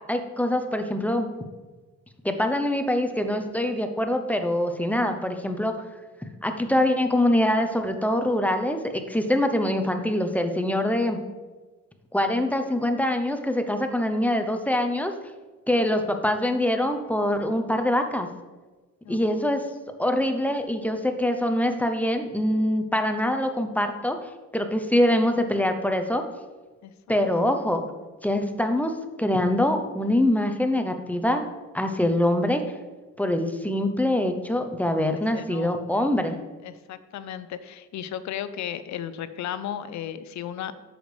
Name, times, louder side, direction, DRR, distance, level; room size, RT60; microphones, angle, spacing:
voice 1, 0.1-1.3 2.2-5.7 6.4-11.2 12.1-15.1 15.7-18.3 19.1-19.6 20.0-24.2 24.5-26.2 27.1-27.9 28.2-28.9 29.2-31.5 31.7-32.6 33.2-36.4, left 1 dB, 5° left, 6 dB, 0.7 m, -24 dB
voice 2, 19.0-19.6 26.8-27.2 35.3-36.0 36.6-40.7, left 10 dB, 65° left, 13 dB, 0.6 m, -35 dB
7.7 x 6.4 x 3.3 m, 1.3 s
cardioid pair, 90°, 30 cm